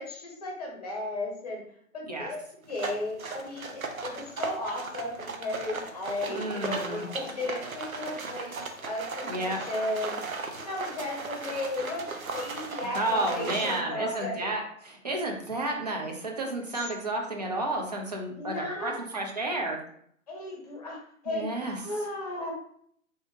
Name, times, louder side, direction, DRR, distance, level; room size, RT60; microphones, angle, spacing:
voice 1, 0.0-1.6 1.9-2.4 2.7-8.6 8.8-10.2 10.5-14.5 16.7-16.9 18.3-19.0 20.3-21.0 21.2-21.6 21.8-22.5, left 2 dB, 30° left, -1 dB, 0.8 m, -35 dB
sound 1, 2.7-13.8, right 4 dB, 85° right, 0.7 m, -37 dB
voice 2, 6.3-7.0 9.2-9.6 12.8-19.8 21.3-21.8, right 2 dB, 30° right, 1 dB, 0.5 m, -31 dB
3.5 x 2.8 x 2.7 m, 0.65 s
figure-of-eight pair, 135°, 41 cm